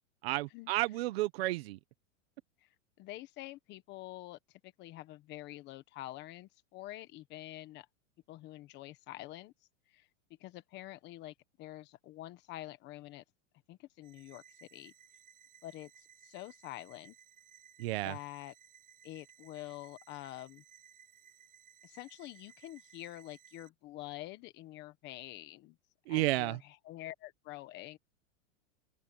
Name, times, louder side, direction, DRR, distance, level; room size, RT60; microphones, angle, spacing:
voice 1, 0.2-1.8 17.8-18.2 26.1-26.6, right 19 dB, 50° right, 1.1 m, -32 dB
voice 2, 3.0-7.9 8.3-9.5 9.9-10.1 10.4-13.2 13.7-14.9 15.6-17.1 18.0-18.5 19.0-20.6 21.8-25.8 26.1-28.0, left 16 dB, 30° left, 1.3 m, -47 dB
sound 1, 14.0-23.7, right 9 dB, 20° right, 6.7 m, -60 dB
open air
supercardioid pair, 165°, 38 cm